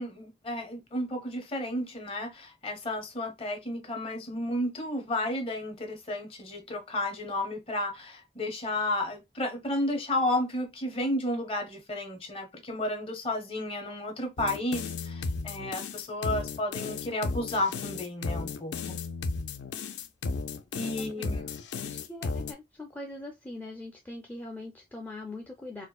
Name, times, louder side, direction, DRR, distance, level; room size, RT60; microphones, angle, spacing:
voice 1, 0.0-19.0 20.7-21.5, left 1 dB, 30° left, 0.8 m, -32 dB
sound 1, 14.4-22.5, left 4 dB, 80° left, 0.4 m, -34 dB
voice 2, 21.0-21.3 21.8-25.9, left 2 dB, 10° left, 0.4 m, -42 dB
4.3 x 2.1 x 2.3 m
head